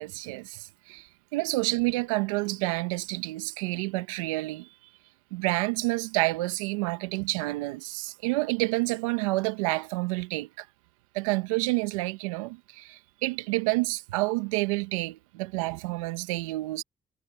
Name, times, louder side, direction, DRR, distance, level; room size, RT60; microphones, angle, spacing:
voice 1, 0.0-4.7 5.3-10.7 11.1-16.8, right 22 dB, 90° right, 1.2 m, -29 dB
hypercardioid pair, 45°, 17 cm